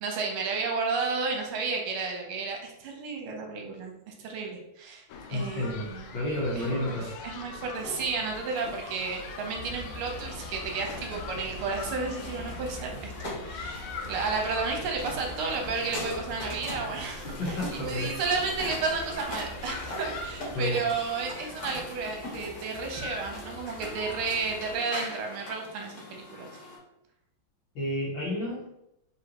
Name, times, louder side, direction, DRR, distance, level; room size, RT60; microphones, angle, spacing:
voice 1, 0.0-5.0 5.3-6.1 6.6-26.5, right 4 dB, 80° right, 2 dB, 1.7 m, -32 dB
sound 1, 5.1-24.8, left 4 dB, 85° left, 1.5 m, -43 dB
voice 2, 5.3-7.1 17.2-18.2 20.5-20.8 27.8-28.7, left 1 dB, 70° left, -4 dB, 1.7 m, -31 dB
sound 2, 7.2-26.8, left 1 dB, 50° left, 1.7 m, -42 dB
sound 3, 9.5-20.6, equal, 60° right, 0.8 m, -44 dB
4.0 x 3.5 x 2.9 m, 0.83 s
omnidirectional pair, 2.4 m